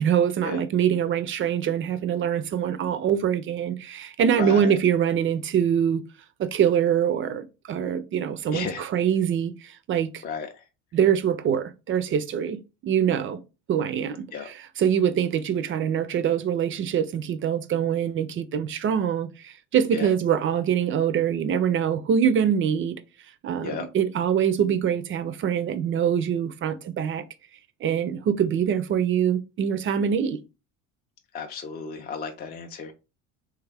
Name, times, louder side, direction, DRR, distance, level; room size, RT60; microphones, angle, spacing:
voice 1, 0.0-6.0 6.4-10.2 10.9-13.4 13.7-23.0 23.4-27.2 27.8-30.4, right 8 dB, 35° right, 0.4 m, -24 dB
voice 2, 4.4-4.7 8.5-8.9 10.2-10.5 14.3-14.5 19.9-20.1 23.6-23.8 31.3-32.9, left 5 dB, 25° left, 0.4 m, -33 dB
3.3 x 2.3 x 3.3 m
supercardioid pair, 90°, 36 cm